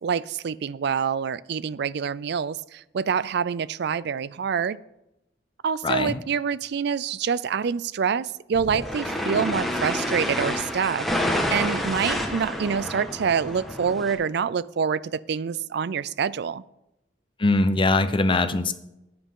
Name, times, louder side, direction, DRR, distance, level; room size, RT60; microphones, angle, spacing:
voice 1, 0.0-4.8 5.6-16.6, right 6 dB, 65° right, 19 dB, 0.4 m, -26 dB
voice 2, 5.8-6.2 17.4-18.7, left 2 dB, 30° left, 10 dB, 0.7 m, -22 dB
sound 1, 8.5-14.1, left 1 dB, ahead, 1.5 m, -28 dB
13.5 x 9.8 x 3.7 m, 0.88 s
head